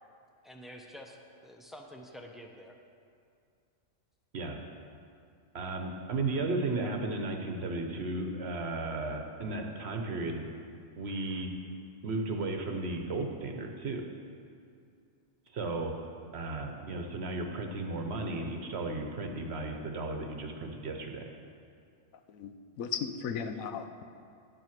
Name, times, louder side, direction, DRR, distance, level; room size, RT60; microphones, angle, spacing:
voice 1, 0.4-2.8, equal, ahead, 1 dB, 0.6 m, -48 dB
voice 2, 5.5-10.4 11.0-11.5 12.0-14.0 15.5-15.9 16.3-21.2, right 2 dB, 55° right, 4 dB, 1.1 m, -34 dB
voice 3, 22.3-24.0, left 7 dB, 90° left, 8 dB, 1.1 m, -36 dB
11.0 x 7.6 x 5.9 m, 2.4 s
omnidirectional pair, 1.4 m